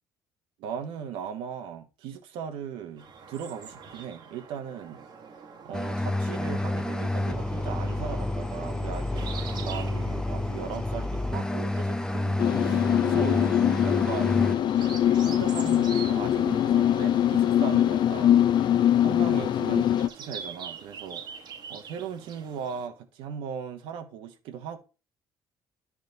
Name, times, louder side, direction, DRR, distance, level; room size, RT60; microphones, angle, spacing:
voice 1, 0.6-5.1 5.6-9.3 9.6-13.5 13.8-14.6 15.2-18.5 19.0-21.4 21.7-24.8, right 7 dB, 80° right, 1.1 m, -38 dB
sound 1, 3.0-22.9, right 6 dB, 55° right, 1.2 m, -45 dB
sound 2, 5.7-14.6, left 1 dB, 5° left, 0.6 m, -29 dB
sound 3, 12.4-20.1, left 10 dB, 55° left, 0.5 m, -23 dB
10.5 x 3.6 x 4.0 m
supercardioid pair, 75°, 9 cm